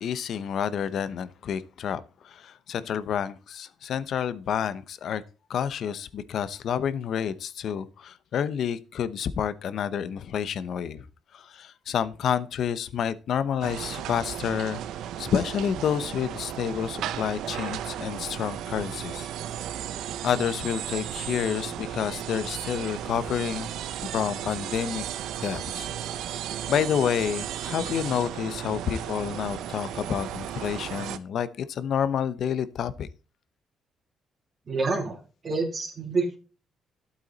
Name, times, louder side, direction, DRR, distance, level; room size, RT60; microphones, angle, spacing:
voice 1, 0.0-5.2 5.5-11.0 11.3-14.8 15.2-19.3 20.2-23.7 24.1-25.0 25.4-26.2 26.7-33.1, left 8 dB, 65° left, 0.8 m, -29 dB
sound 1, 13.6-31.2, right 11 dB, 85° right, 0.7 m, -35 dB
voice 2, 34.7-35.2 35.4-36.4, right 3 dB, 45° right, 2.9 m, -27 dB
12.0 x 8.3 x 4.1 m
cardioid pair, 90°, 0 cm